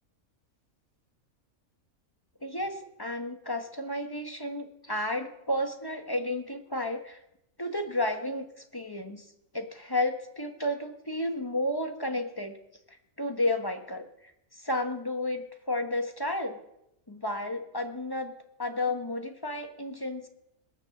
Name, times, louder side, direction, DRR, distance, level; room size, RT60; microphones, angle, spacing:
voice 1, 2.4-7.2 7.6-8.5 8.7-9.3 9.5-12.6 12.9-16.6 17.1-18.3 18.6-20.3, left 1 dB, 15° left, 5 dB, 1.4 m, -32 dB
19.5 x 9.7 x 7.2 m, 0.81 s
omnidirectional pair, 1.6 m